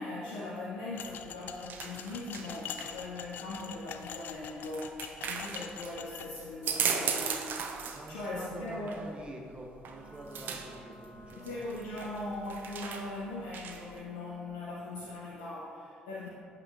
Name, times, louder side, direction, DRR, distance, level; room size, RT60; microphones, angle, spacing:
voice 1, 0.0-7.6 8.1-9.1 11.4-16.3, left 2 dB, 75° left, -7 dB, 0.8 m, -40 dB
sound 1, 1.0-6.3, left 9 dB, 55° left, 0.4 m, -44 dB
sound 2, 1.0-14.0, right 6 dB, 55° right, 0.6 m, -39 dB
voice 2, 7.8-11.6, right 1 dB, 25° right, 0 dB, 1.3 m, -46 dB
Wind instrument woodwind instrument, 9.8-14.6, right 1 dB, 80° right, 1.5 m, -54 dB
8.2 x 7.7 x 2.6 m, 2.6 s
figure-of-eight pair, 45°, 4 cm